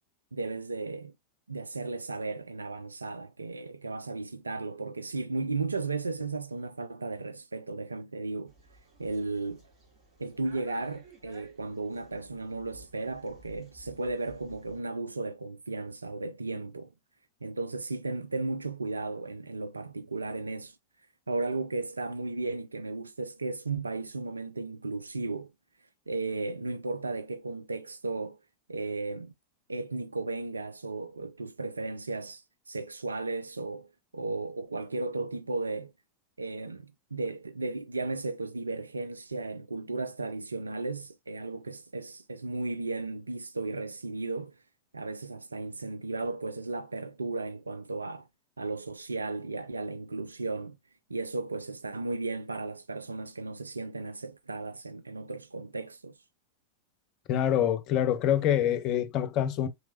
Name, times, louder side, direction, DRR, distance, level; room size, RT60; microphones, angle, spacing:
voice 1, 0.3-1.1 1.5-8.5 9.0-9.6 10.2-16.9 17.4-20.7 21.3-25.5 26.1-28.4 28.7-29.3 29.7-33.9 34.1-35.9 36.4-44.5 44.9-48.3 48.6-50.8 51.1-56.1, right 3 dB, 80° right, 0.3 m, -35 dB
sound 1, 8.4-14.8, right 2 dB, 30° right, 2.7 m, -56 dB
voice 2, 57.3-59.7, left 10 dB, 40° left, 0.6 m, -26 dB
4.0 x 3.2 x 2.7 m
figure-of-eight pair, 90°, 0 cm